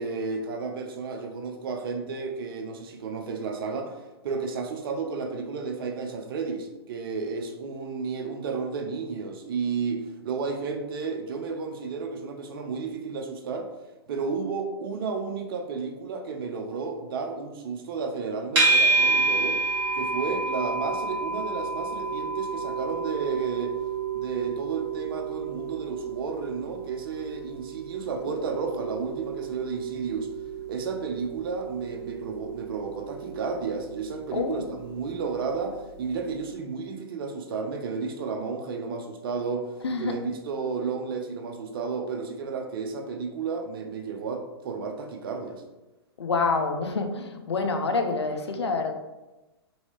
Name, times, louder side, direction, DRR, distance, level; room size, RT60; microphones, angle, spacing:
voice 1, 0.0-13.7 14.1-19.6 19.9-23.8 24.1-30.3 30.7-39.7 40.0-45.6, right 5 dB, 60° right, 4 dB, 0.6 m, -32 dB
sound 1, 18.6-35.8, right 3 dB, 30° right, 1.4 m, -30 dB
voice 2, 34.3-34.6 39.8-40.1 46.2-48.9, left 4 dB, 85° left, 5 dB, 0.5 m, -27 dB
3.0 x 2.7 x 3.0 m, 1.1 s
hypercardioid pair, 115°, 14 cm